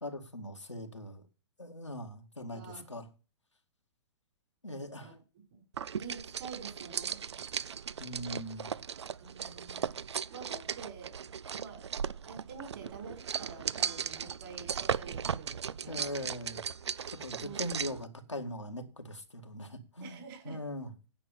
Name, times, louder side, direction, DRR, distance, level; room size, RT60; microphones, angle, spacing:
voice 1, 0.0-1.2 1.6-3.1 4.6-5.2 8.0-8.7 15.9-16.6 17.1-20.2 20.5-20.9, left 1 dB, 90° left, 2.1 m, -41 dB
voice 2, 2.5-2.9 4.9-5.2 5.5-5.6 6.0-7.2 9.2-10.0 10.3-11.2 11.5-11.9 12.2-16.3 17.4-17.8 20.0-20.6, right 5 dB, 50° right, 5.1 m, -48 dB
sound 1, 5.7-18.0, right 7 dB, 70° right, 0.6 m, -37 dB
10.0 x 7.1 x 6.9 m
figure-of-eight pair, 110°, 15 cm